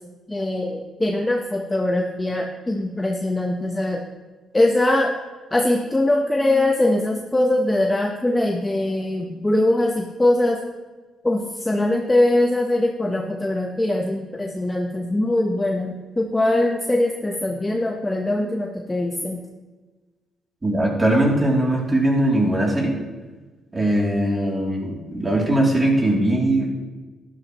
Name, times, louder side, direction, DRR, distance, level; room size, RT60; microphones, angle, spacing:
voice 1, 0.3-4.0 4.5-5.1 5.5-10.6 11.2-19.4, left 1 dB, 15° left, 1 dB, 1.1 m, -22 dB
voice 2, 20.6-23.0 23.7-26.7, right 1 dB, 20° right, -2 dB, 3.1 m, -20 dB
12.0 x 11.5 x 3.1 m, 1.3 s
cardioid pair, 90°, 0 cm